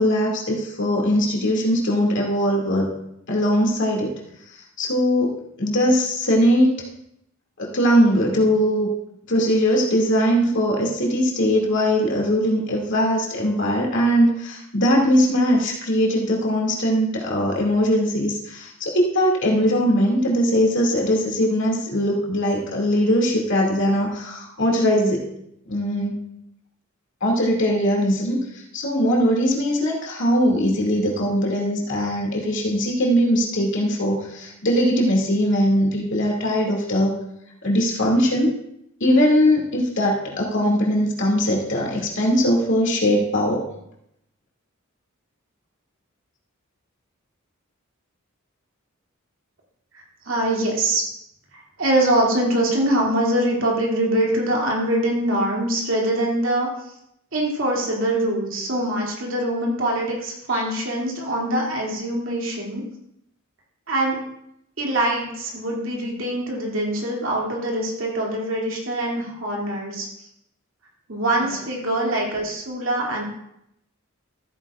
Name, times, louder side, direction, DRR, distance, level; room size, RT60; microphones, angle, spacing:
voice 1, 0.0-2.9 3.3-4.1 4.8-6.7 7.6-8.9 9.3-25.2 25.7-26.2 27.2-28.5 28.7-37.1 37.6-38.5 39.0-43.7 60.5-60.6, equal, 60° left, -2 dB, 2.4 m, -20 dB
voice 2, 49.9-51.0 51.5-56.7 57.3-62.8 63.9-64.2 64.8-70.3 71.1-73.2, right 1 dB, 65° right, -2 dB, 2.6 m, -23 dB
14.0 x 9.2 x 2.4 m, 0.77 s
head